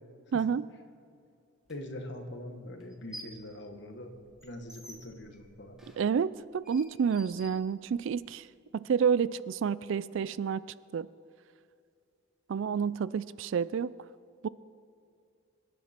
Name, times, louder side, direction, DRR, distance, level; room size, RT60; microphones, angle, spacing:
voice 1, 0.3-0.6 6.0-8.5 8.7-10.6 10.9-11.1 12.5-13.9 14.4-14.5, right 6 dB, 65° right, 19 dB, 0.3 m, -29 dB
voice 2, 1.7-4.1 4.4-5.8, left 1 dB, 55° left, 5 dB, 1.4 m, -43 dB
sound 1, 1.7-1.8 2.8-3.5 3.8-8.2, left 1 dB, 5° right, 1.9 m, -51 dB
24.0 x 10.5 x 4.4 m, 2.5 s
head